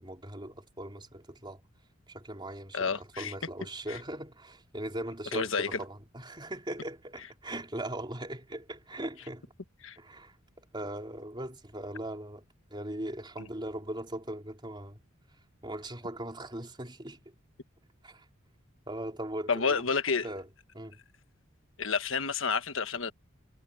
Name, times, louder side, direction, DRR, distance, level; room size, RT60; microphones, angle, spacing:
voice 1, 0.0-1.6 2.1-9.5 10.0-10.4 10.7-12.4 12.7-15.0 15.6-17.2 18.0-18.3 18.9-19.8 20.2-20.5 20.7-21.0, right 1 dB, 20° right, 3.7 m, -39 dB
voice 2, 2.7-3.3 3.9-4.0 5.3-5.8 9.8-10.0 13.4-13.5 19.5-20.3 21.8-23.1, left 5 dB, 65° left, 1.4 m, -30 dB
head